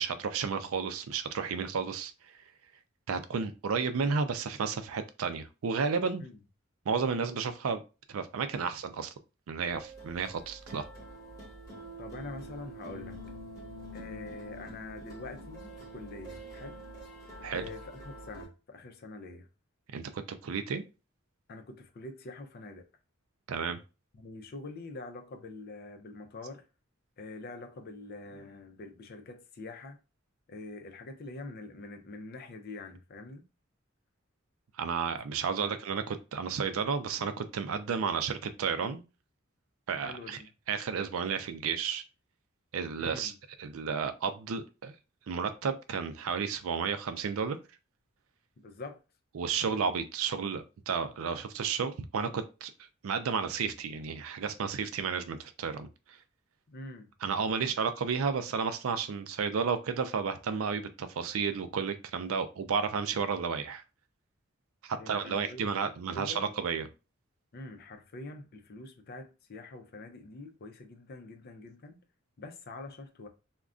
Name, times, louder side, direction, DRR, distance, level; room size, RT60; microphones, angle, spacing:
voice 1, 0.0-2.1 3.1-6.2 6.9-7.8 8.1-9.1 9.5-10.9 17.4-17.6 19.9-20.8 23.5-23.8 34.8-39.0 39.9-40.4 40.7-42.0 42.7-43.3 43.6-44.9 45.3-47.6 49.3-52.7 53.0-56.2 57.2-63.8 64.8-66.9, right 6 dB, 80° right, 0.4 m, -32 dB
sound 1, 9.6-18.5, right 1 dB, 20° left, 1.1 m, -46 dB
voice 2, 12.0-13.2 13.9-16.8 17.5-19.5 21.5-22.9 24.1-26.7 27.2-30.0 30.5-33.4 35.6-35.8 40.0-40.5 42.9-43.4 48.6-49.0 56.7-57.1 65.0-65.7 66.1-66.5 67.5-72.0 72.4-73.3, left 2 dB, 50° left, 0.5 m, -45 dB
2.4 x 2.1 x 3.6 m
head